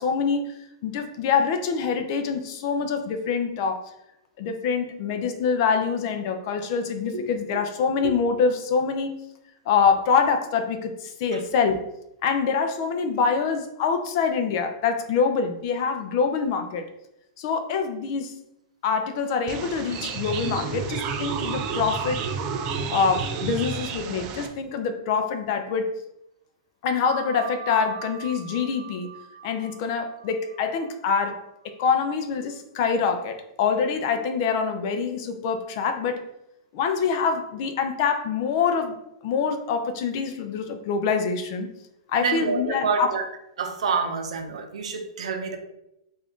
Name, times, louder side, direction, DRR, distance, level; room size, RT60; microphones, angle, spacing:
voice 1, 0.0-3.9 4.4-9.1 9.7-11.8 12.2-16.8 17.4-18.3 18.8-22.2 22.9-25.9 26.8-29.1 29.4-36.2 36.7-39.0 39.2-41.7 42.1-43.1, left 5 dB, 40° left, 6 dB, 0.5 m, -25 dB
sound 1, 19.5-24.5, right 5 dB, 25° right, 0.4 m, -30 dB
sound 2, 27.1-32.3, right 9 dB, 55° right, 1.0 m, -42 dB
voice 2, 42.2-43.2 43.6-45.6, right 5 dB, 85° right, 5 dB, 0.7 m, -27 dB
3.5 x 2.5 x 3.5 m, 0.83 s
supercardioid pair, 165°, 3 cm